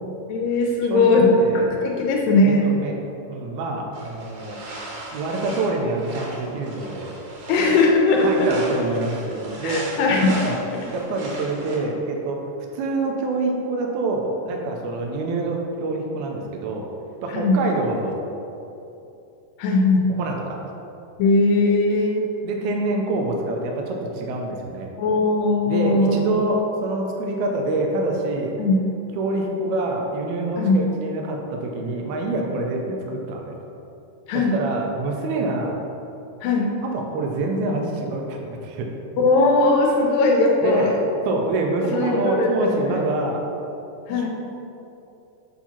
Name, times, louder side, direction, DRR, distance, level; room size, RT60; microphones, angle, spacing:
voice 1, 0.3-1.3 1.6-2.7 7.5-8.5 9.6-10.3 10.7-10.9 17.3-17.6 19.6-20.1 21.2-22.3 25.0-26.2 28.6-28.8 30.6-30.8 34.3-34.6 36.4-36.7 39.2-41.0 41.9-43.0 44.1-44.3, left 3 dB, 85° left, 0 dB, 2.3 m, -19 dB
voice 2, 0.9-1.7 2.4-3.0 3.3-4.6 5.1-7.1 8.2-9.9 10.3-10.6 10.9-12.4 12.7-16.9 17.2-18.2 20.2-20.6 22.4-24.9 25.7-28.5 29.2-33.6 34.3-35.8 36.8-38.9 40.6-43.4 44.2-44.3, right 2 dB, 80° right, 1 dB, 2.0 m, -26 dB
sound 1, 3.9-11.8, right 1 dB, 65° right, 2.0 m, -35 dB
7.1 x 2.8 x 5.7 m, 2.8 s
omnidirectional pair, 3.9 m